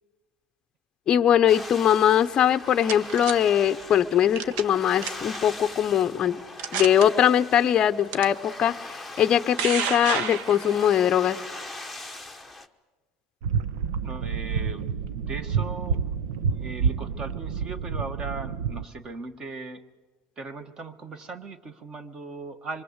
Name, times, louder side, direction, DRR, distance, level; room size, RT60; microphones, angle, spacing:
voice 1, 1.1-6.4 6.7-8.8 9.2-11.4, left 9 dB, 25° left, 9 dB, 0.7 m, -21 dB
sound 1, 1.5-12.7, left 2 dB, ahead, 1.2 m, -41 dB
sound 2, 2.4-3.3 4.4-4.7 5.0-5.4 6.0-6.1 6.6-7.0 8.1-8.2 9.2-10.9, right 7 dB, 55° right, 1.4 m, -30 dB
sound 3, 13.4-18.9, right 6 dB, 80° right, 1.0 m, -28 dB
voice 2, 14.0-16.0 16.5-19.8 20.4-22.8, right 3 dB, 25° right, 11 dB, 1.4 m, -38 dB
25.5 x 23.5 x 8.1 m, 1.3 s
cardioid pair, 160°, 3 cm